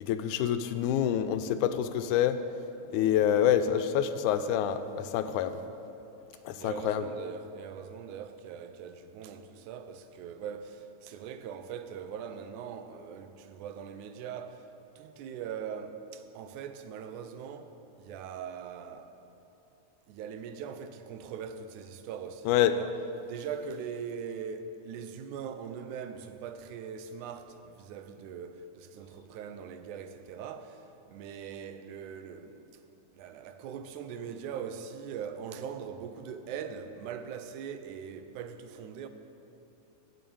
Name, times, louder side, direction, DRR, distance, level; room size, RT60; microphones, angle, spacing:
voice 1, 0.0-2.4 2.9-5.6 6.5-7.0 22.5-22.7, left 10 dB, 90° left, 2.0 m, -27 dB
voice 2, 6.3-14.7 15.0-19.1 20.1-22.9 23.2-32.7 33.1-39.1, right 7 dB, 85° right, 2.1 m, -41 dB
10.0 x 7.3 x 8.6 m
omnidirectional pair, 3.4 m